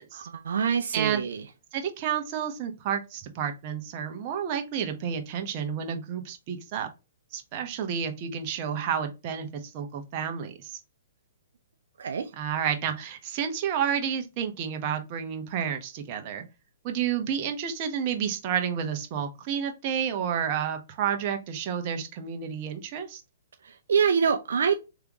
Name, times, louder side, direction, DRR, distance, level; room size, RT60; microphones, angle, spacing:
voice 1, 0.1-1.4 12.0-12.3 23.6-24.9, right 6 dB, 75° right, 0.5 m, -25 dB
voice 2, 0.9-1.2 1.7-6.9 7.3-10.8 12.3-16.4 16.8-23.2, right 8 dB, 40° right, 0.9 m, -30 dB
3.6 x 3.4 x 2.9 m
hypercardioid pair, 135°, 0 cm